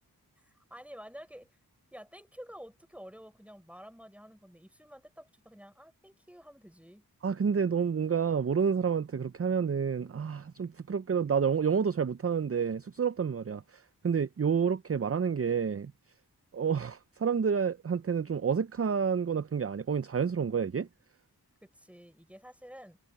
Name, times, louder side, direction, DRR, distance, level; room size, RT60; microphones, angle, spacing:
voice 1, 0.4-1.6 1.9-7.0 21.6-23.0, equal, 5° right, 4.8 m, -50 dB
voice 2, 7.2-15.9 16.5-20.9, right 6 dB, 40° right, 0.5 m, -29 dB
wide cardioid pair, 50°, 38 cm